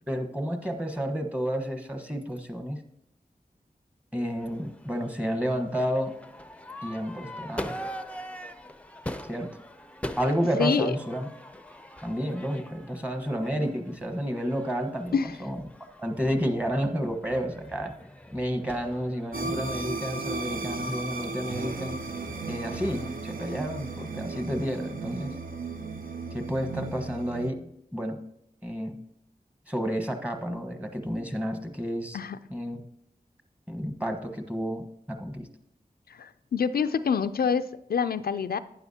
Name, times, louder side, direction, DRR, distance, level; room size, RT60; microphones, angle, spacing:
voice 1, 0.1-2.8 4.1-6.1 6.8-7.8 9.3-9.5 10.2-11.3 12.0-15.6 16.0-17.9 18.3-22.0 22.5-25.3 26.3-27.6 27.9-28.2 28.6-29.0 29.7-32.2 32.5-32.8 33.7-35.5, equal, 10° right, 6 dB, 1.2 m, -30 dB
Crowd / Fireworks, 4.2-23.2, equal, 10° left, 0.6 m, -43 dB
sound 1, 19.3-27.5, right 3 dB, 65° right, 0.7 m, -35 dB
voice 2, 36.1-38.6, left 6 dB, 90° left, 10 dB, 0.4 m, -26 dB
11.5 x 9.4 x 2.8 m, 0.77 s
cardioid pair, 45°, 15 cm